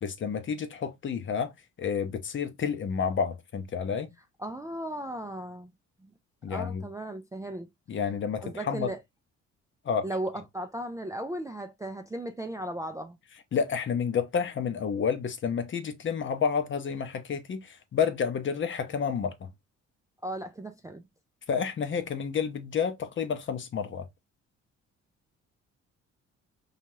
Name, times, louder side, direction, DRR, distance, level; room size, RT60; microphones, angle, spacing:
voice 1, 0.0-1.5 1.8-4.1 6.4-6.9 7.9-8.9 9.8-10.1 13.5-19.5 21.5-24.1, left 6 dB, 40° left, 0.6 m, -30 dB
voice 2, 4.4-5.7 6.0-6.1 6.5-7.7 8.4-9.0 10.0-13.2 20.2-21.0, right 1 dB, 10° right, 0.3 m, -36 dB
2.7 x 2.4 x 3.0 m
cardioid pair, 90°, 30 cm